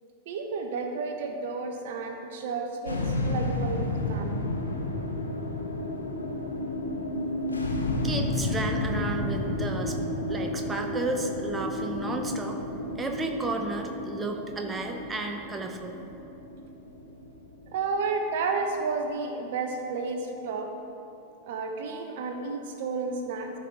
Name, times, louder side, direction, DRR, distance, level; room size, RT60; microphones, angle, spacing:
voice 1, 0.3-4.5 17.7-20.7 21.5-23.5, right 4 dB, 55° right, 4 dB, 0.7 m, -31 dB
sound 1, 2.9-19.3, left 2 dB, 75° left, 0.9 m, -31 dB
voice 2, 8.0-10.0 10.3-12.6 13.0-16.0, right 2 dB, 15° right, 3 dB, 0.8 m, -32 dB
13.5 x 4.8 x 3.7 m, 2.8 s
figure-of-eight pair, 90°, 0 cm